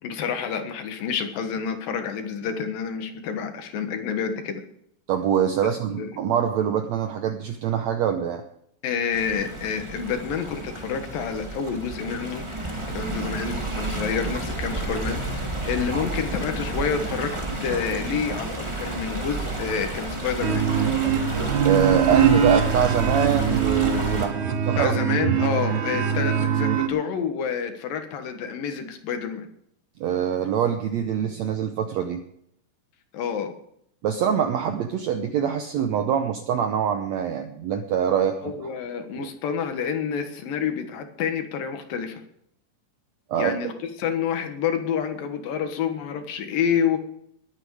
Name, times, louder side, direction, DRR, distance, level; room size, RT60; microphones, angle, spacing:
voice 1, 0.0-4.6 6.0-6.1 8.8-12.5 12.9-17.3 17.6-20.6 24.8-29.5 33.1-33.5 38.4-42.2 43.4-43.7 44.0-47.0, left 7 dB, 75° left, 7 dB, 3.1 m, -28 dB
voice 2, 5.1-8.4 15.9-16.0 21.6-24.9 25.2-25.3 30.0-32.2 34.0-38.5 39.1-39.3 43.3-43.5, right 8 dB, 75° right, 7 dB, 1.6 m, -24 dB
Stream, 9.1-24.3, right 2 dB, 15° right, 1.1 m, -31 dB
sound 1, 20.4-26.9, right 7 dB, 60° right, 2.6 m, -22 dB
20.5 x 8.9 x 4.8 m, 0.72 s
omnidirectional pair, 4.2 m